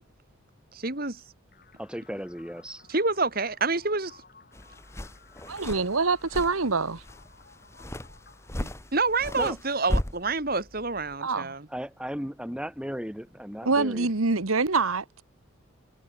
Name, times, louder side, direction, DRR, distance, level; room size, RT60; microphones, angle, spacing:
voice 1, 0.7-1.2 2.9-4.2 8.6-11.7, right 3 dB, 45° right, 2.5 m, -28 dB
sound 1, 1.5-9.5, left 5 dB, 45° left, 7.1 m, -57 dB
voice 2, 1.8-2.8 9.3-9.6 11.7-14.1, equal, 5° right, 1.7 m, -35 dB
sound 2, 4.5-11.2, equal, 15° left, 1.3 m, -36 dB
voice 3, 5.5-7.0 11.2-11.5 13.6-15.2, right 4 dB, 90° right, 1.5 m, -25 dB
head